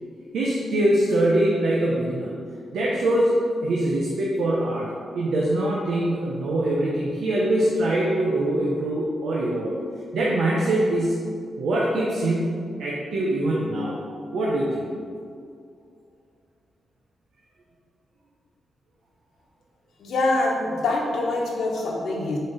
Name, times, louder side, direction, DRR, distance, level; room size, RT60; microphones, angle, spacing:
voice 1, 0.3-2.3 2.7-9.7 10.1-11.2 11.6-14.0 14.3-14.9, right 1 dB, 85° right, -5 dB, 0.9 m, -23 dB
voice 2, 20.0-22.4, left 2 dB, 85° left, -2 dB, 1.1 m, -24 dB
6.5 x 4.3 x 4.1 m, 2.3 s
wide cardioid pair, 150°, 0 cm